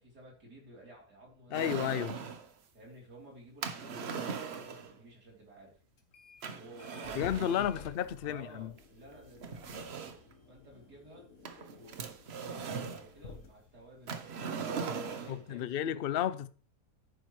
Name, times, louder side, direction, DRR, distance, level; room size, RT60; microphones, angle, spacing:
voice 1, 0.0-2.1 2.7-5.8 6.5-7.8 8.2-10.0 10.5-11.3 11.7-16.1, right 1 dB, 80° right, 4.0 m, -54 dB
voice 2, 1.5-2.2 7.2-8.7 15.3-16.5, left 10 dB, 70° left, 0.5 m, -32 dB
sound 1, 1.5-2.5 3.6-4.9 6.4-7.7 8.8-8.9 9.4-10.3 11.4-13.1 14.1-15.4, right 5 dB, 45° right, 1.0 m, -39 dB
sound 2, 6.0-6.5 6.8-15.3, left 5 dB, 55° left, 1.5 m, -53 dB
10.5 x 9.0 x 3.2 m
omnidirectional pair, 1.7 m